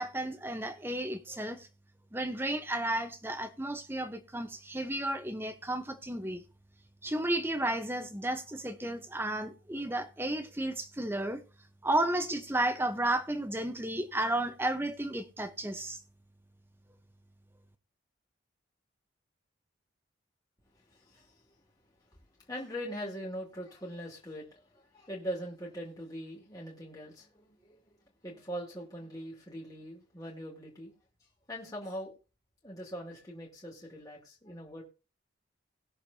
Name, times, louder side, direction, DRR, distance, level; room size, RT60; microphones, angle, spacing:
voice 1, 0.0-1.7 2.1-6.4 7.0-11.4 11.8-16.0, right 1 dB, 10° right, 0.9 m, -33 dB
voice 2, 20.9-21.4 22.5-28.0 28.2-30.9 31.5-32.1 32.6-34.8, equal, 20° left, 2.4 m, -42 dB
20.0 x 6.6 x 2.8 m
head